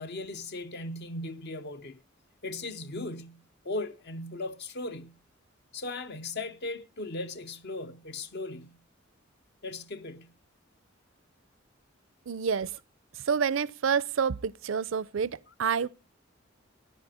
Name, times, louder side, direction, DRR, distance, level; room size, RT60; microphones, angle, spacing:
voice 1, 0.0-2.0 2.4-5.2 5.7-8.8 9.6-10.3, left 2 dB, 55° left, 0.8 m, -37 dB
voice 2, 12.3-12.8 13.3-15.9, right 6 dB, 70° right, 0.5 m, -28 dB
14.5 x 10.0 x 4.3 m
head